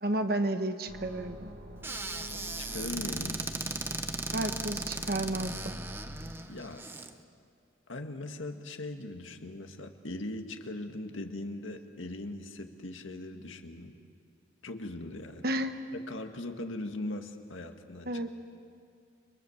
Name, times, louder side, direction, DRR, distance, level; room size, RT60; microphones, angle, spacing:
voice 1, 0.0-1.5 4.3-5.8 15.4-15.7 18.1-18.3, right 1 dB, 50° right, 8 dB, 1.2 m, -31 dB
sound 1, 0.9-6.3, equal, 75° right, 3.4 m, -45 dB
Squeak / Cupboard open or close, 1.8-7.1, right 3 dB, 10° right, 0.8 m, -37 dB
voice 2, 2.6-3.4 6.5-6.8 7.9-13.9 14.6-15.4 15.9-18.2, left 2 dB, 80° left, 5 dB, 1.8 m, -40 dB
30.0 x 23.0 x 7.2 m, 2.3 s
head